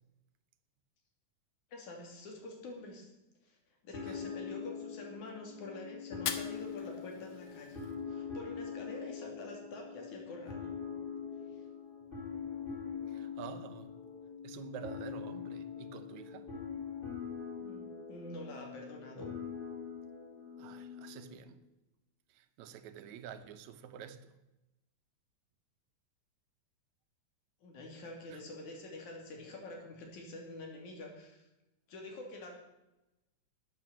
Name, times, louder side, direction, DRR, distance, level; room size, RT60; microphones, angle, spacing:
voice 1, 1.7-3.1 3.4-3.6 3.8-7.8 8.1-10.7 11.5-11.6 17.6-19.3 27.6-31.5 31.9-32.5, left 2 dB, 85° left, 4.1 m, -47 dB
sound 1, 3.9-21.4, left 6 dB, 15° left, 3.5 m, -43 dB
Fire, 6.1-8.1, left 9 dB, 65° left, 1.8 m, -42 dB
voice 2, 13.1-13.9 14.4-16.5 20.6-21.6 22.6-24.2 28.3-28.4, right 8 dB, 80° right, 2.2 m, -48 dB
12.5 x 8.6 x 7.6 m
omnidirectional pair, 3.3 m